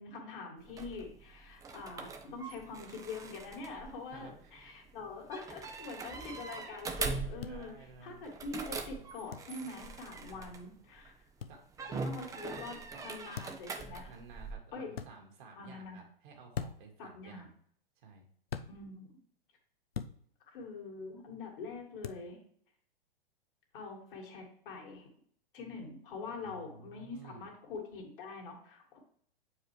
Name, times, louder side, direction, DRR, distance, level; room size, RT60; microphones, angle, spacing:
voice 1, 0.0-7.7 8.0-11.1 11.9-12.8 13.0-14.1 14.7-14.9 15.6-16.0 17.0-17.5 18.7-19.1 20.5-22.4 23.7-25.1 25.5-29.0, left 3 dB, 65° left, -1 dB, 2.2 m, -44 dB
sound 1, 0.6-11.1 11.7-14.5, right 4 dB, 10° right, 0.5 m, -42 dB
voice 2, 4.1-4.5 7.4-8.2 10.3-10.5 11.5-11.6 12.5-13.2 14.1-17.5 18.0-18.3 26.4-27.4, right 4 dB, 55° right, 1 dB, 1.9 m, -54 dB
sound 2, 7.4-7.6 9.3-9.5 11.4-11.6 13.3-13.7 14.9-15.1 16.5-16.9 18.5-18.7 19.9-20.2 22.0-22.2, left 7 dB, 90° left, 0.5 m, -40 dB
7.4 x 4.8 x 3.1 m, 0.62 s
figure-of-eight pair, 110°, 29 cm